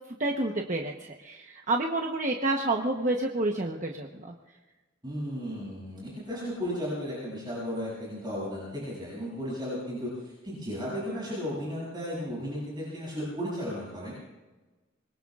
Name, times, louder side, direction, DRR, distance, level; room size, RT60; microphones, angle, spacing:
voice 1, 0.2-4.3, right 2 dB, 40° right, 1 dB, 1.0 m, -29 dB
voice 2, 5.0-14.1, equal, 20° right, -7 dB, 7.2 m, -34 dB
25.0 x 22.0 x 2.5 m, 1.2 s
head